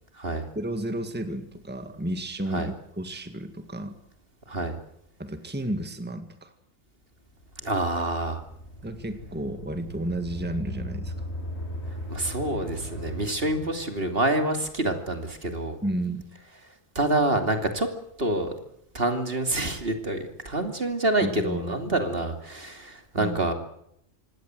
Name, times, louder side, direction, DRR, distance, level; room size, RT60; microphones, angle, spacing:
voice 1, 0.6-3.9 5.2-6.5 8.8-11.3 13.6-13.7 15.8-16.2 21.2-21.9 23.2-23.4, right 1 dB, 10° right, 8 dB, 1.9 m, -32 dB
sound 1, 7.3-14.3, equal, 55° left, 5.6 m, -38 dB
voice 2, 7.6-8.4 12.1-15.8 16.9-17.9 18.2-18.5 18.9-23.5, right 1 dB, 45° right, 6 dB, 3.0 m, -27 dB
26.5 x 19.5 x 7.9 m, 0.74 s
omnidirectional pair, 1.4 m